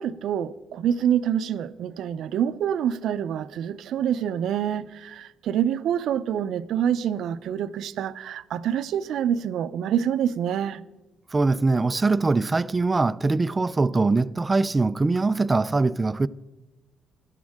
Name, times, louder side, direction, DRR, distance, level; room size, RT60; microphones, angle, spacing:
voice 1, 0.0-10.8, right 9 dB, 70° right, 0.6 m, -26 dB
voice 2, 11.3-16.3, right 3 dB, 20° right, 0.3 m, -22 dB
17.5 x 12.5 x 3.6 m
cardioid pair, 145°, 0 cm